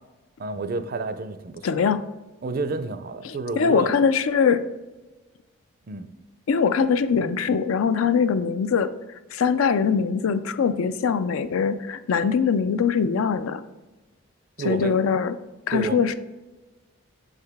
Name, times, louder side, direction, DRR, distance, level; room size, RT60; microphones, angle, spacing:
voice 1, 0.4-1.8 2.4-3.9 5.9-6.1 14.6-15.0 15.7-16.0, right 3 dB, 45° right, 10 dB, 0.4 m, -30 dB
voice 2, 1.6-2.0 3.2-4.7 6.5-8.9 9.3-13.6 14.6-15.3 15.7-16.1, left 6 dB, 75° left, 12 dB, 0.4 m, -22 dB
6.3 x 5.0 x 3.5 m, 1.2 s
head